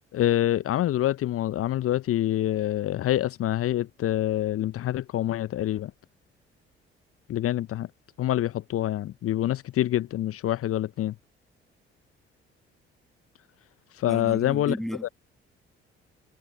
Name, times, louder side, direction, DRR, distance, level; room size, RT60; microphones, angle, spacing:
voice 1, 0.1-5.9 7.3-7.9 8.2-11.1 14.0-14.8 15.0-15.1, left 13 dB, 45° left, 0.9 m, -26 dB
voice 2, 14.1-15.1, equal, ahead, 1.9 m, -33 dB
figure-of-eight pair, 45°, 31 cm